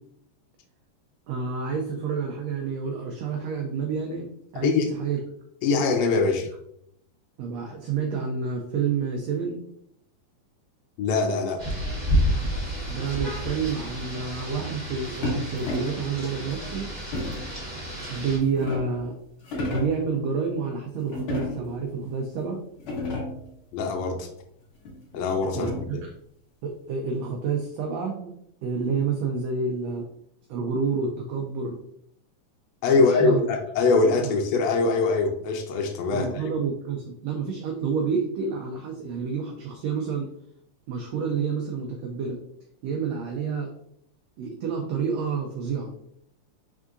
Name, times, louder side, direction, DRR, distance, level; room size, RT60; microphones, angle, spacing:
voice 1, 1.3-5.2 7.4-9.6 12.9-16.9 18.1-19.2 19.6-22.6 25.5-26.0 26.6-28.3 28.6-30.0 30.5-31.8 32.9-33.4 34.2-34.4 36.1-40.3 40.9-42.4 42.8-43.7 44.4-45.9, right 5 dB, 85° right, 2 dB, 1.5 m, -29 dB
voice 2, 5.6-6.5 11.0-11.6 23.7-24.3 25.1-25.7 32.8-36.4, left 4 dB, 85° left, 3 dB, 1.5 m, -23 dB
Rain, 11.6-18.4, equal, 25° right, 0.9 m, -30 dB
sound 1, 15.2-16.1 17.1-17.6 18.2-19.0 19.4-20.0 21.1-21.8 22.4-22.5 22.7-23.5 24.9-26.0, left 2 dB, 60° left, 1.5 m, -32 dB
4.6 x 3.6 x 2.5 m, 0.72 s
omnidirectional pair, 3.6 m